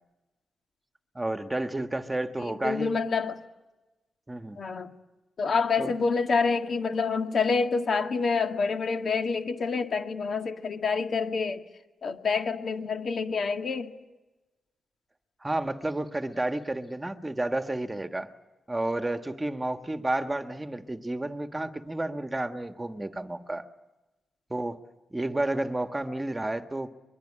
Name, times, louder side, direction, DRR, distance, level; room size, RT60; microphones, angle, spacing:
voice 1, 1.1-2.9 4.3-4.6 5.8-5.9 15.4-18.3 18.7-23.6 24.5-24.8 25.1-26.9, right 2 dB, 15° right, 1.5 m, -31 dB
voice 2, 2.4-3.4 4.6-4.9 5.4-11.7 12.0-14.0, left 4 dB, 55° left, 1.9 m, -27 dB
23.5 x 22.5 x 10.0 m
cardioid pair, 80°, 0 cm